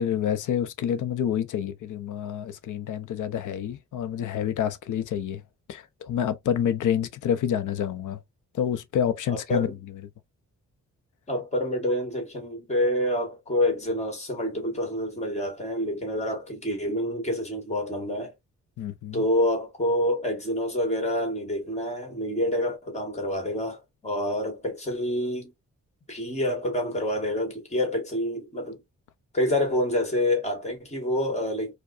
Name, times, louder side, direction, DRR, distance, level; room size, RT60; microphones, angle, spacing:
voice 1, 0.0-5.4 5.7-8.2 8.5-9.7 18.8-19.2, left 9 dB, 90° left, 0.6 m, -28 dB
voice 2, 9.3-9.7 11.3-18.3 19.1-25.5 26.1-28.8 29.3-31.7, left 1 dB, 20° left, 1.5 m, -27 dB
4.8 x 2.2 x 2.4 m
wide cardioid pair, 180°, 30 cm